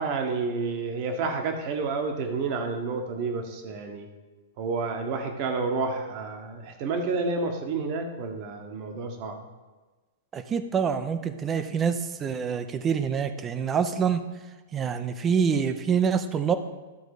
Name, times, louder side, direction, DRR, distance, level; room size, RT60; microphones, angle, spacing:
voice 1, 0.0-4.1 4.6-9.4, right 4 dB, 45° right, 4 dB, 1.3 m, -30 dB
voice 2, 10.3-14.2 14.7-16.6, right 7 dB, 25° right, 9 dB, 0.6 m, -26 dB
11.5 x 3.9 x 4.9 m, 1.3 s
hypercardioid pair, 115°, 0 cm